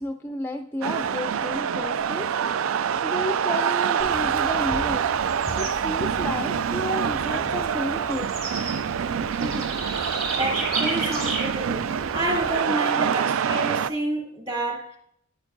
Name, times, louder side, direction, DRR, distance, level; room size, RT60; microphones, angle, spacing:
voice 1, 0.0-2.3 3.0-5.1 5.6-8.3, left 1 dB, 10° left, 0.4 m, -31 dB
sound 1, 0.8-13.9, right 7 dB, 80° right, 0.3 m, -26 dB
Bird / Insect, 4.0-12.6, right 2 dB, 50° right, 3.3 m, -34 dB
voice 2, 9.3-15.0, right 1 dB, 25° right, 3.3 m, -30 dB
10.5 x 9.0 x 2.6 m
head